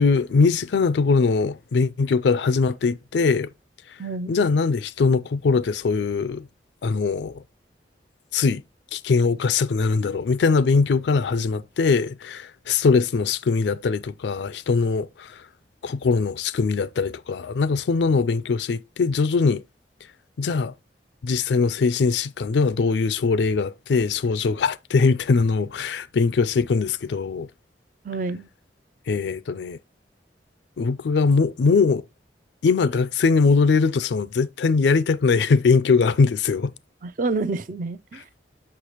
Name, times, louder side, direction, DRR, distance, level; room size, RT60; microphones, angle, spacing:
voice 1, 0.0-3.5 4.3-6.5 6.8-7.4 8.3-8.6 8.9-15.4 15.8-19.6 20.4-20.7 21.2-27.5 29.1-29.8 30.8-32.0 32.6-36.7, left 4 dB, 75° left, 0.4 m, -21 dB
voice 2, 4.0-4.4 28.0-28.5 37.0-38.2, right 3 dB, 45° right, 0.4 m, -28 dB
6.6 x 5.7 x 2.9 m
head